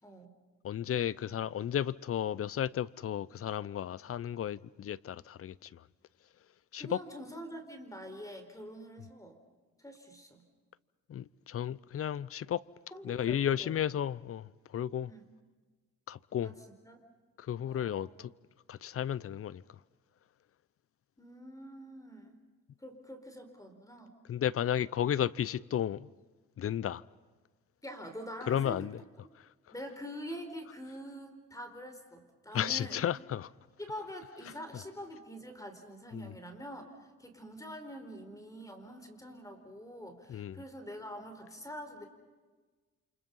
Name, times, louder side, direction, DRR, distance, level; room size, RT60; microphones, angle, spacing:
voice 1, 0.0-0.3 6.8-9.4 9.8-10.4 12.9-13.7 15.1-15.3 16.4-16.6 16.8-17.0 17.6-18.1 21.2-22.4 22.8-24.1 27.8-28.9 29.7-33.0 33.8-42.1, equal, 10° left, 4.5 m, -45 dB
voice 2, 0.6-5.8 6.7-7.0 11.1-12.6 13.0-15.1 16.1-16.5 17.4-18.3 18.7-19.6 24.3-26.1 26.6-27.0 28.5-29.0 32.5-33.5 36.1-36.3 40.3-40.6, left 10 dB, 50° left, 0.7 m, -33 dB
29.0 x 27.5 x 5.6 m
cardioid pair, 90°, 30 cm